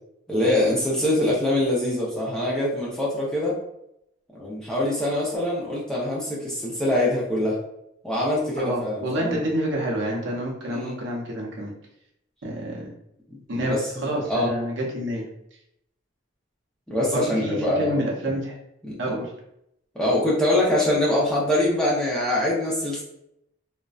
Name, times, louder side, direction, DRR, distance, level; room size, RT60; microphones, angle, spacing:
voice 1, 0.3-3.6 4.3-7.6 8.0-9.4 10.7-11.0 13.3-14.5 16.9-18.0 18.8-19.1 19.9-23.0, left 1 dB, 5° left, -7 dB, 0.5 m, -24 dB
voice 2, 8.6-11.7 12.4-12.9 13.5-15.3 17.1-18.6 19.0-19.3, right 1 dB, 65° right, -2 dB, 0.6 m, -28 dB
2.5 x 2.1 x 2.3 m, 0.79 s
head